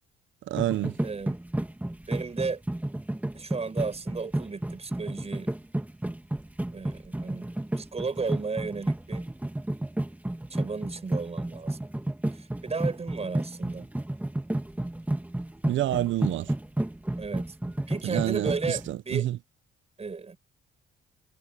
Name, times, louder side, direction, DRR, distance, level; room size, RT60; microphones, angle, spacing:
voice 1, 0.5-1.0 15.6-16.5 18.0-19.4, right 14 dB, 75° right, 0.8 m, -28 dB
sound 1, 0.6-18.9, right 1 dB, 10° right, 2.2 m, -31 dB
voice 2, 1.0-1.4 2.1-2.6 3.3-5.5 6.7-7.5 7.8-9.3 10.5-11.8 12.3-13.9 17.2-19.3 20.0-20.4, right 4 dB, 30° right, 6.6 m, -34 dB
cardioid pair, 90°, 20 cm